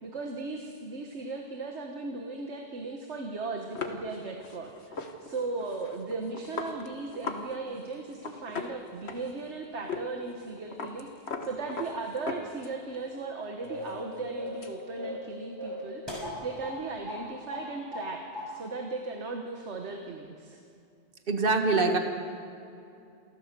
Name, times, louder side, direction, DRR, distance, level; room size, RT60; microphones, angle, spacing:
voice 1, 0.0-11.1 11.4-20.6, right 3 dB, 90° right, 3 dB, 1.7 m, -37 dB
sound 1, 3.8-7.5 7.7-7.8 8.1-9.5 9.9-10.1 10.3-13.0 13.3-14.8, left 4 dB, 70° left, 1.5 m, -39 dB
sound 2, 13.7-14.0 14.3-14.6 15.0-15.3 15.6-16.8 17.1-17.2 17.5-18.1 18.3-18.5, left 1 dB, 20° right, 6.3 m, -37 dB
voice 2, 21.3-22.0, right 3 dB, 50° right, 4 dB, 1.8 m, -24 dB
28.0 x 14.0 x 6.8 m, 2.6 s
omnidirectional pair, 1.1 m